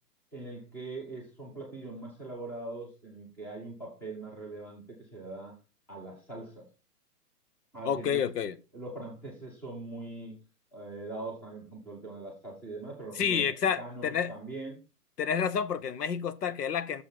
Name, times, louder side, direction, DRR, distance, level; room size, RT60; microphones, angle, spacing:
voice 1, 0.3-5.6 5.9-6.7 7.7-8.2 8.7-10.3 10.7-13.5 13.8-14.8, right 2 dB, 5° left, 1.0 m, -42 dB
voice 2, 7.8-8.6 13.2-14.3 15.2-17.0, left 7 dB, 75° left, 1.0 m, -29 dB
6.9 x 5.0 x 5.7 m
hypercardioid pair, 165°, 48 cm